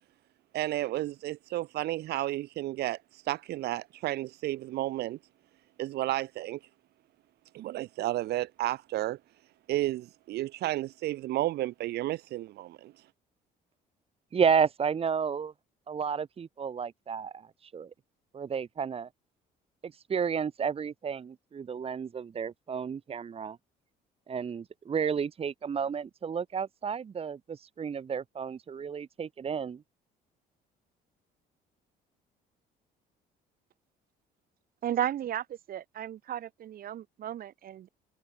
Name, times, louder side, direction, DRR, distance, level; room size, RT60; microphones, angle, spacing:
voice 1, 0.5-5.2 5.8-6.6 7.5-9.2 9.7-12.9, right 15 dB, 75° right, 2.5 m, -32 dB
voice 2, 14.3-15.5 15.9-17.9 18.3-19.1 19.8-23.6 24.3-29.8, right 6 dB, 35° right, 1.6 m, -32 dB
voice 3, 34.8-37.9, right 11 dB, 60° right, 7.5 m, -34 dB
cardioid pair, 110°, 17 cm